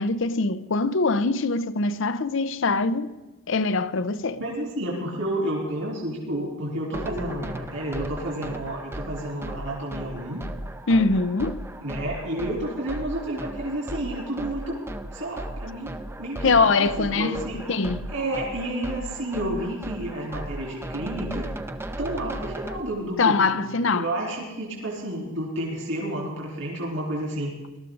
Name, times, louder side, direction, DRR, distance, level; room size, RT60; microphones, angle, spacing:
voice 1, 0.0-3.2 3.5-4.4 10.9-11.7 16.4-17.4 17.7-18.1 23.2-24.1, left 3 dB, 60° left, 0.6 m, -23 dB
voice 2, 4.4-10.4 11.8-14.8 15.1-17.6 18.1-21.5 22.0-27.5, right 1 dB, 70° right, 3.5 m, -30 dB
sound 1, 6.9-22.8, right 1 dB, 10° right, 0.6 m, -36 dB
19.0 x 13.0 x 3.9 m
head